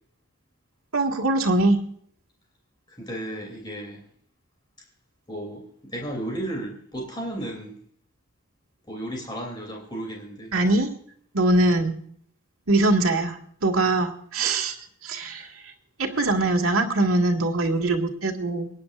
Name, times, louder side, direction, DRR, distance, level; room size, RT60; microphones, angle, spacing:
voice 1, 0.9-1.8 10.5-10.9 11.3-12.0 12.7-14.8 15.0-15.5 16.0-18.7, right 2 dB, 85° right, 1 dB, 2.0 m, -22 dB
voice 2, 3.0-4.0 5.3-7.8 8.9-10.5 15.4-15.5, right 1 dB, 20° left, 0 dB, 2.9 m, -34 dB
24.5 x 9.9 x 2.5 m, 0.63 s
head